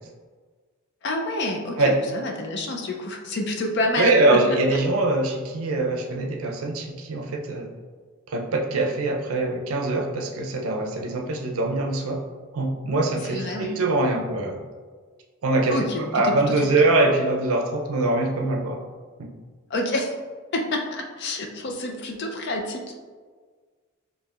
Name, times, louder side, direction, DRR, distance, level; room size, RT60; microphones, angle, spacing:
voice 1, 1.0-4.4 13.2-13.8 15.7-16.7 19.7-20.1 20.5-23.0, left 1 dB, 50° left, 2 dB, 0.4 m, -28 dB
voice 2, 4.0-7.7 8.3-12.2 12.5-14.6 15.4-15.8 16.1-18.8 19.2-19.3, right 2 dB, 75° right, 2 dB, 0.5 m, -23 dB
4.4 x 2.8 x 2.4 m, 1.5 s
head